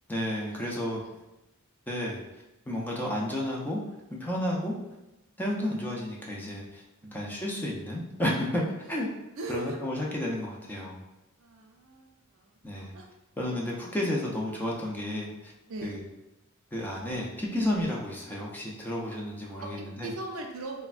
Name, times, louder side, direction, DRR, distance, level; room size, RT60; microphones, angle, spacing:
voice 1, 0.1-1.0 1.9-2.2 2.7-3.8 4.1-4.8 5.4-6.8 7.1-8.6 8.9-9.1 9.5-11.0 12.6-12.9 13.4-15.5 15.8-16.0 16.7-20.1, left 1 dB, 10° left, -3 dB, 0.4 m, -31 dB
voice 2, 0.6-1.1 5.6-6.0 7.0-7.3 8.5-9.0 9.4-9.8 11.4-12.6 12.9-13.1 14.4-14.6 15.7-16.0 19.6-20.9, right 2 dB, 65° right, 2 dB, 0.5 m, -40 dB
3.2 x 2.1 x 2.4 m, 0.96 s
head